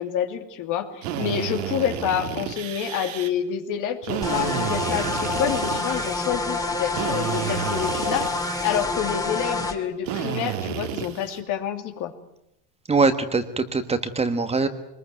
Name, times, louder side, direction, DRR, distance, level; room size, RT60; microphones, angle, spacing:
voice 1, 0.0-12.1, left 9 dB, 55° left, 7 dB, 2.8 m, -28 dB
Drill, 1.0-3.3 4.0-6.3 6.9-8.8 10.0-11.4, right 9 dB, 85° right, 2.8 m, -31 dB
sound 1, 4.2-9.7, left 3 dB, 10° left, 2.5 m, -27 dB
voice 2, 12.9-14.7, right 4 dB, 15° right, 9 dB, 1.5 m, -22 dB
22.5 x 20.5 x 9.2 m, 0.81 s
supercardioid pair, 125°, 37 cm